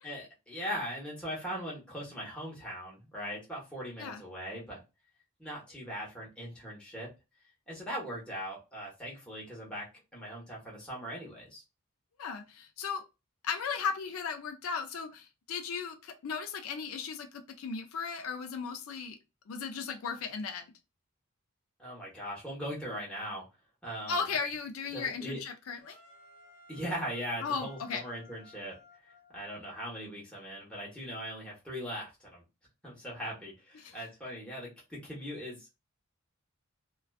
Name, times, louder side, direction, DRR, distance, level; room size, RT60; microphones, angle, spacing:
voice 1, 0.0-4.8 5.4-7.1 7.7-9.9 10.1-11.6 21.8-23.4 23.8-24.2 24.9-25.4 26.7-28.7 29.3-32.4 32.8-35.7, equal, 5° left, 1.0 m, -40 dB
voice 2, 12.2-13.0 13.4-19.2 19.5-20.7 24.1-26.0 27.4-28.0 33.7-34.0, left 5 dB, 70° left, 0.4 m, -36 dB
sound 1, 25.8-29.9, left 2 dB, 30° left, 1.2 m, -57 dB
2.5 x 2.2 x 2.3 m
head